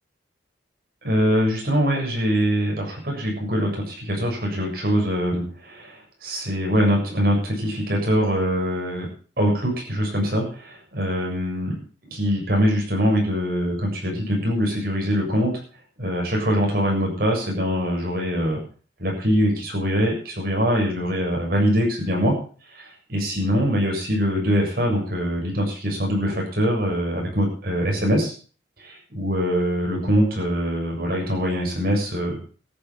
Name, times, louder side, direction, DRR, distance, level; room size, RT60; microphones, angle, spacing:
voice 1, 1.0-9.1 9.4-11.8 12.1-15.5 16.0-18.6 19.0-22.4 22.7-28.3 28.8-32.4, equal, 55° right, 0 dB, 7.4 m, -23 dB
14.0 x 9.6 x 7.5 m, 0.40 s
head